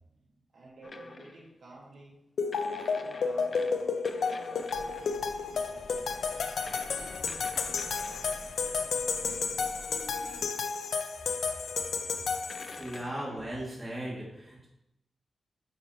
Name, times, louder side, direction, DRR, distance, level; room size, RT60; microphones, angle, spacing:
voice 1, 0.5-2.1 2.5-4.0 4.4-6.5 7.0-8.2 8.6-10.5, right 2 dB, 65° right, -4 dB, 1.9 m, -53 dB
sound 1, 0.8-1.5 2.5-5.3 6.7-8.6 10.7-10.8 12.5-13.5, left 3 dB, 35° left, 0.5 m, -47 dB
sound 2, 2.4-13.0, left 5 dB, 80° left, 0.6 m, -32 dB
sound 3, 4.7-10.4, left 1 dB, 10° left, 1.4 m, -50 dB
voice 2, 12.8-14.7, right 1 dB, 15° right, -6 dB, 2.4 m, -37 dB
9.7 x 5.5 x 3.0 m, 0.87 s
wide cardioid pair, 175°, 0 cm